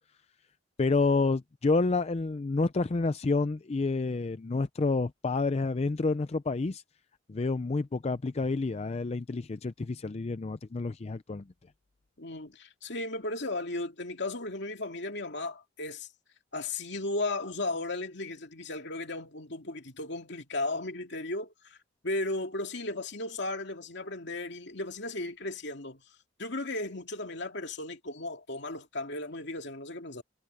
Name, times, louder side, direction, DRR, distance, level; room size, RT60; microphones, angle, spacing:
voice 1, 0.8-6.8 7.3-11.4, left 3 dB, 35° left, 0.5 m, -29 dB
voice 2, 12.2-16.1 16.5-21.8 22.0-26.0 26.4-30.2, left 2 dB, 65° left, 2.5 m, -35 dB
head